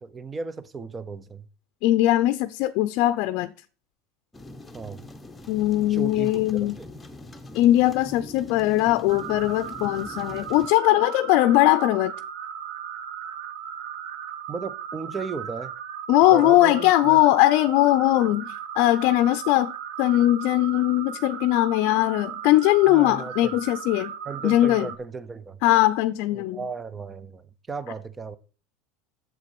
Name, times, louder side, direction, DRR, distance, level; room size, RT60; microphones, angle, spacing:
voice 1, 0.0-1.5 4.7-5.0 5.9-6.3 6.8-6.9 14.5-15.7 16.3-17.2 22.8-23.5 24.3-25.6 26.3-28.4, right 4 dB, 20° right, 0.8 m, -35 dB
voice 2, 1.8-3.5 5.5-6.8 7.5-12.1 16.1-19.7 20.0-24.1 24.4-24.9 25.6-26.6, left 15 dB, 60° left, 0.6 m, -20 dB
sound 1, 4.3-10.7, left 1 dB, 10° left, 1.1 m, -43 dB
sound 2, 9.1-25.0, right 8 dB, 70° right, 1.2 m, -37 dB
8.1 x 7.5 x 6.0 m
supercardioid pair, 135°, 0 cm